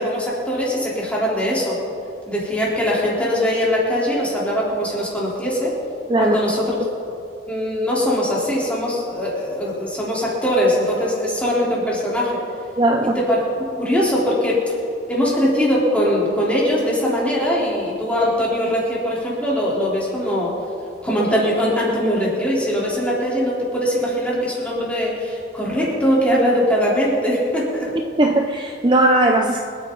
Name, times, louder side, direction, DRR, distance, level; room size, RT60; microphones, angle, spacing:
voice 1, 0.0-1.8 2.3-5.7 6.2-6.9 7.5-12.4 13.2-13.4 13.7-14.6 15.1-20.5 21.0-27.9, equal, 5° left, -6 dB, 3.8 m, -21 dB
voice 2, 12.8-13.2 28.0-29.6, right 1 dB, 25° right, 2 dB, 0.6 m, -18 dB
27.5 x 9.5 x 4.0 m, 2.7 s
head